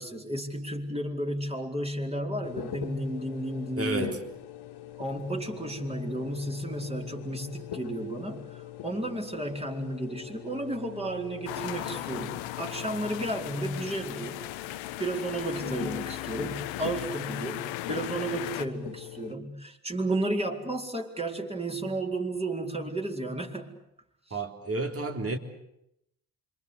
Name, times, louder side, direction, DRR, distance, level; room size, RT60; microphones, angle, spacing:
voice 1, 0.0-4.2 5.0-14.4 15.0-23.8, right 1 dB, 15° right, 2 dB, 4.6 m, -33 dB
sound 1, 2.4-19.4, left 12 dB, 55° left, 1.8 m, -43 dB
voice 2, 3.8-4.2 24.3-25.4, right 3 dB, 30° right, 5 dB, 3.9 m, -31 dB
sound 2, 11.5-18.7, left 15 dB, 70° left, 1.3 m, -37 dB
27.0 x 24.0 x 8.4 m, 0.82 s
hypercardioid pair, 50°, 47 cm